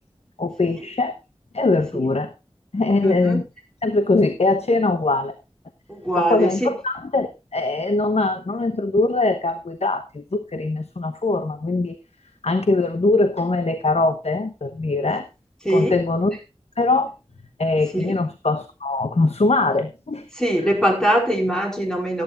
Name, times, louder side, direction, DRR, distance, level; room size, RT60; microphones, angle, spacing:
voice 1, 0.4-1.1 1.5-2.3 2.7-3.4 3.8-5.3 6.2-12.0 12.4-15.3 15.7-16.4 16.8-17.1 17.6-20.3, left 2 dB, 80° left, 9 dB, 1.0 m, -22 dB
voice 2, 3.0-3.4 5.9-6.7 15.6-16.0 17.9-18.2 20.3-22.2, right 1 dB, 5° left, 1 dB, 4.6 m, -22 dB
14.5 x 11.5 x 2.6 m, 0.27 s
wide cardioid pair, 50°, 11 cm